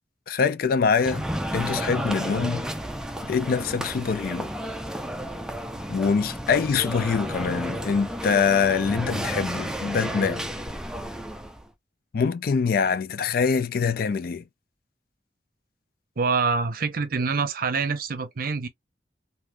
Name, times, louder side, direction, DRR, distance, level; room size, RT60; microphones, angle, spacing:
voice 1, 0.3-1.2 1.5-2.6 3.3-4.5 5.9-10.5 12.1-14.4, left 5 dB, 55° left, 0.4 m, -24 dB
sound 1, 1.0-11.6, equal, 5° right, 0.5 m, -32 dB
voice 2, 16.2-18.7, right 4 dB, 55° right, 0.7 m, -25 dB
3.5 x 2.6 x 2.2 m
head